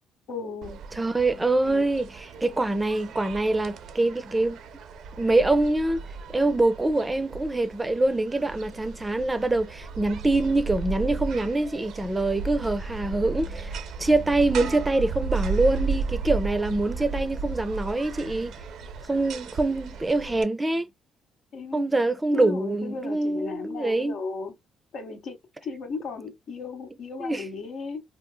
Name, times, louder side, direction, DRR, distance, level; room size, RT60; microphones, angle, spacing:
voice 1, 0.3-0.8 1.7-1.9 21.5-21.9 22.3-24.5 24.9-25.4 25.6-28.0, left 4 dB, 70° left, 0.9 m, -35 dB
sound 1, 0.6-20.4, right 4 dB, 75° right, 0.4 m, -35 dB
voice 2, 0.9-4.6 5.2-6.0 6.3-18.5 19.1-20.9 21.7-24.2 27.2-27.5, right 2 dB, 15° right, 0.4 m, -25 dB
3.7 x 2.3 x 2.2 m
cardioid pair, 85°, 0 cm